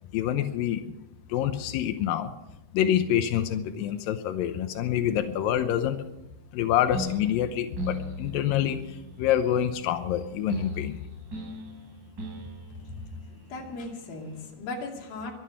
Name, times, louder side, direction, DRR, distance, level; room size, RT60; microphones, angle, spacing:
voice 1, 0.1-0.9 1.3-2.3 2.7-6.0 6.5-8.8 9.2-11.0, left 10 dB, 85° left, 8 dB, 2.0 m, -26 dB
sound 1, 6.9-14.4, left 1 dB, 25° right, 3.7 m, -39 dB
voice 2, 12.7-13.1 13.5-15.3, left 2 dB, 55° left, 0 dB, 4.3 m, -37 dB
23.5 x 9.6 x 5.8 m, 0.94 s
omnidirectional pair, 5.3 m